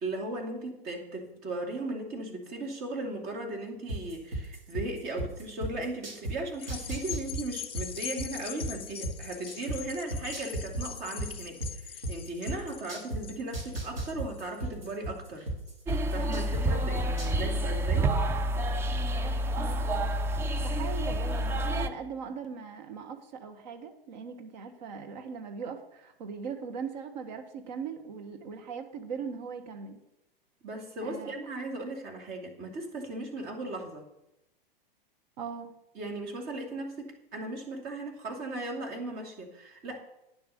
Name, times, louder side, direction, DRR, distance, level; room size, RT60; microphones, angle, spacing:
voice 1, 0.0-15.5 16.1-18.1 30.6-34.0 35.9-40.0, right 2 dB, 30° right, 2 dB, 2.7 m, -37 dB
sound 1, 3.9-6.3 6.7-9.8 10.1-13.2 13.5-16.6 17.0-17.5, right 1 dB, 80° right, 3.8 m, -34 dB
sound 2, 6.5-15.2 15.7-15.8, left 10 dB, 20° left, 0.8 m, -42 dB
sound 3, 15.9-21.9, right 1 dB, 10° right, 0.4 m, -28 dB
voice 2, 19.2-20.2 20.6-30.0 31.0-31.3 35.4-35.7, right 6 dB, 50° right, 7 dB, 1.3 m, -40 dB
9.9 x 7.0 x 6.8 m, 0.87 s
figure-of-eight pair, 100°, 29 cm